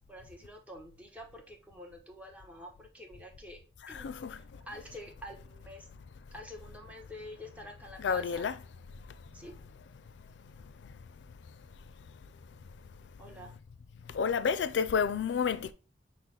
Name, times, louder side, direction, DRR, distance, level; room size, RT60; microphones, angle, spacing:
voice 1, 0.1-3.6 3.9-5.9 6.3-8.5 9.3-9.5 13.2-13.6, equal, 10° right, 0.8 m, -48 dB
voice 2, 3.9-4.4 8.0-8.6 14.1-15.7, left 6 dB, 90° left, 0.4 m, -30 dB
6.2 x 2.1 x 3.8 m
head